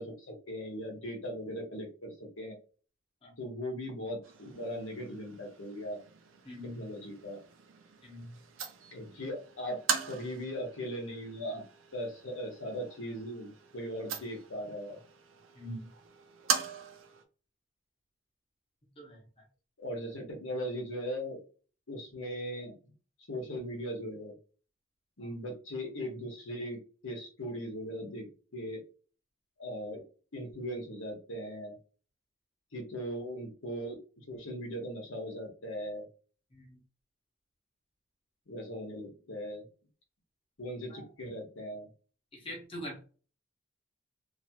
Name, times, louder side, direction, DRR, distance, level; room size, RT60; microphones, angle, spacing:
voice 1, 0.0-2.6 3.4-6.0 6.6-7.4 8.9-9.8 10.1-11.6 11.9-15.0 19.8-21.4 21.9-22.8 23.3-24.3 25.2-28.8 29.6-30.0 30.3-31.8 32.7-34.0 34.3-36.1 38.5-39.6 40.6-41.9, equal, 85° left, 0 dB, 1.2 m, -39 dB
sound 1, 4.2-17.2, right 7 dB, 80° right, 0.6 m, -40 dB
voice 2, 6.4-6.8 8.0-8.3 15.6-15.9 19.0-19.2 25.2-25.3 36.5-36.8 40.9-41.0 42.3-43.0, equal, 25° left, -2 dB, 0.9 m, -43 dB
2.8 x 2.5 x 2.8 m, 0.37 s
head